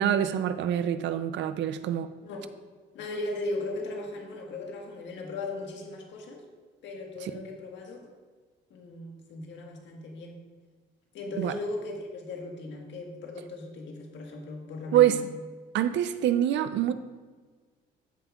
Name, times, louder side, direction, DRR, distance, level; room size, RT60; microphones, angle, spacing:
voice 1, 0.0-2.1 7.2-7.3 11.4-11.5 14.9-15.2 15.7-16.9, right 11 dB, 70° right, 0.5 m, -25 dB
voice 2, 2.9-6.4 6.8-8.1 8.7-10.4 11.1-15.2, left 2 dB, 75° left, 1.5 m, -37 dB
14.0 x 5.6 x 2.4 m
cardioid pair, 80°, 19 cm